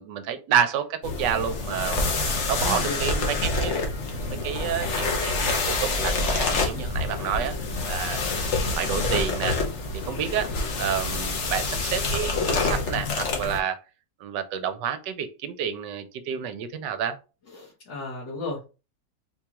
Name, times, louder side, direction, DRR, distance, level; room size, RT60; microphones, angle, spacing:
voice 1, 0.0-2.1 2.5-3.8 4.3-7.5 7.9-8.2 8.8-9.6 9.9-10.5 10.8-13.8 14.2-17.2, right 8 dB, 80° right, 1.2 m, -29 dB
sound 1, 1.0-13.6, left 3 dB, 50° left, 0.9 m, -27 dB
voice 2, 2.1-3.0 17.5-18.7, left 2 dB, 75° left, 2.0 m, -35 dB
4.6 x 2.4 x 2.9 m
omnidirectional pair, 1.9 m